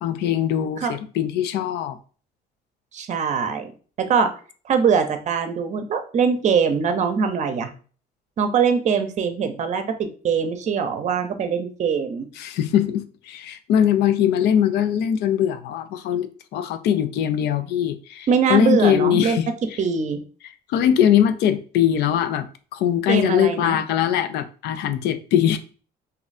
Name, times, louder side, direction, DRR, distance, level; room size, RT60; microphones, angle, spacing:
voice 1, 0.0-2.0 12.4-19.8 20.7-22.5 22.7-25.6, left 10 dB, 80° left, 0.4 m, -21 dB
voice 2, 2.9-3.7 4.1-4.3 4.7-7.7 8.4-12.3 18.3-19.4 19.8-20.2 23.1-23.8, right 6 dB, 45° right, 0.6 m, -22 dB
2.7 x 2.4 x 4.0 m
cardioid pair, 110°, 17 cm